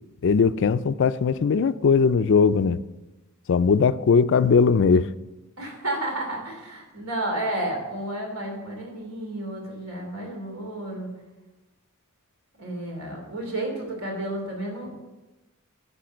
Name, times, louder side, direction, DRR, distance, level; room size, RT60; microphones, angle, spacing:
voice 1, 0.2-2.8 3.5-5.1, left 5 dB, 60° left, 0.4 m, -19 dB
voice 2, 5.6-11.1 12.6-14.9, right 1 dB, 75° right, 3.0 m, -31 dB
10.5 x 5.6 x 6.2 m
head